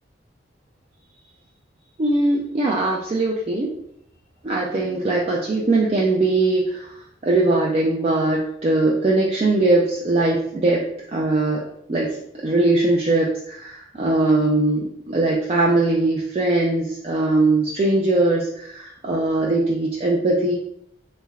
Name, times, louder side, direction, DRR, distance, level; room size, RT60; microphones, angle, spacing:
voice 1, 2.0-3.7 4.4-10.8 11.1-11.6 11.9-12.2 12.4-20.5, right 2 dB, 35° right, -3 dB, 0.3 m, -20 dB
3.2 x 3.1 x 2.3 m, 0.73 s
head